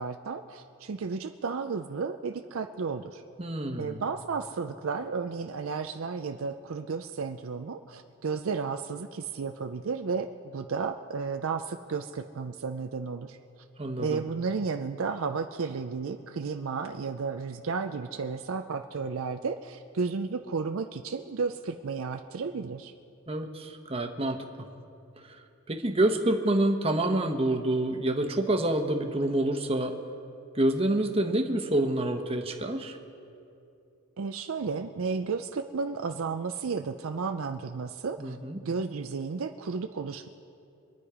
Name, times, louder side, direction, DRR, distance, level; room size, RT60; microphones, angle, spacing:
voice 1, 0.0-3.2 3.8-13.4 14.0-22.9 34.2-38.4 38.6-40.3, right 5 dB, 60° right, 7 dB, 0.5 m, -33 dB
voice 2, 3.4-4.0 13.8-14.2 23.3-24.7 25.3-25.4 25.7-29.9 30.5-33.0 38.2-38.6, right 1 dB, 25° right, 4 dB, 1.0 m, -27 dB
25.0 x 9.7 x 4.9 m, 2.6 s
head